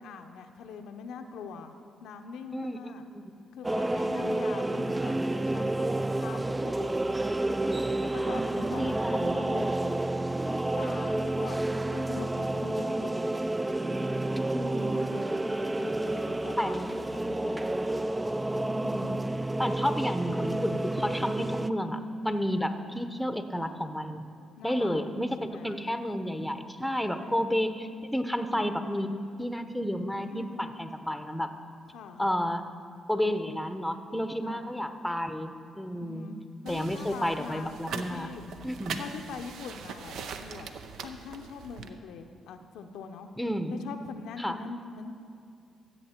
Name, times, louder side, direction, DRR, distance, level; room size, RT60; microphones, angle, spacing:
voice 1, 0.0-3.1 3.5-7.3 8.0-10.0 10.4-13.3 13.8-14.2 14.8-17.7 24.6-25.1 25.4-25.8 27.1-27.5 30.3-30.9 31.9-32.2 34.4-34.7 35.9-38.4 39.0-40.7 41.0-43.3 43.7-45.1, left 5 dB, 80° left, 6 dB, 0.6 m, -43 dB
voice 2, 2.5-3.2 8.2-9.4 14.5-15.1 16.6-16.9 18.7-19.3 19.6-24.3 24.6-31.5 32.2-32.6 33.1-36.3 36.7-38.3 38.6-39.0 43.4-43.8 44.4-44.6, equal, ahead, 8 dB, 0.8 m, -31 dB
sound 1, 3.6-21.7, right 2 dB, 20° right, 0.3 m, -30 dB
sound 2, 36.7-41.9, right 6 dB, 75° right, 0.6 m, -41 dB
14.0 x 7.7 x 4.4 m, 2.4 s
supercardioid pair, 55°, 0 cm